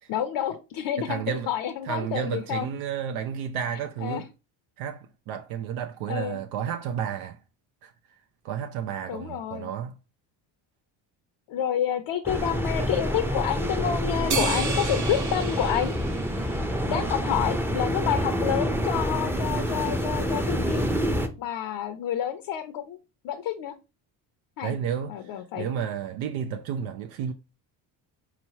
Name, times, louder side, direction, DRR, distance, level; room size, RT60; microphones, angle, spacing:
voice 1, 0.1-2.7 4.0-4.2 6.1-6.4 9.1-9.7 11.5-15.9 16.9-20.9 21.4-23.0 23.2-23.7 24.6-24.7 25.1-25.8, left 10 dB, 60° left, 0.7 m, -29 dB
voice 2, 1.0-1.5 1.8-4.3 4.8-7.4 7.8-7.9 8.4-9.9 16.8-17.1 24.6-27.3, right 8 dB, 70° right, 0.6 m, -32 dB
sound 1, 12.2-21.3, equal, 5° right, 0.6 m, -27 dB
sound 2, 14.3-17.0, right 4 dB, 35° right, 1.2 m, -32 dB
4.4 x 3.0 x 2.8 m
supercardioid pair, 70°, 50 cm